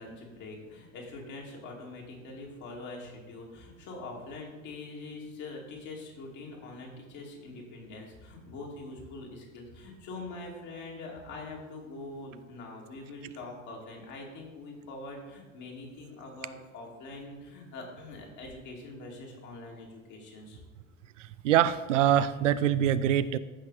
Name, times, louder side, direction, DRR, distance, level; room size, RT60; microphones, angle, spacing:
voice 1, 0.0-20.6, left 2 dB, 50° left, -1 dB, 2.8 m, -44 dB
voice 2, 21.2-23.4, right 10 dB, 70° right, 14 dB, 0.5 m, -24 dB
14.5 x 5.8 x 4.2 m, 1.3 s
figure-of-eight pair, 65°, 38 cm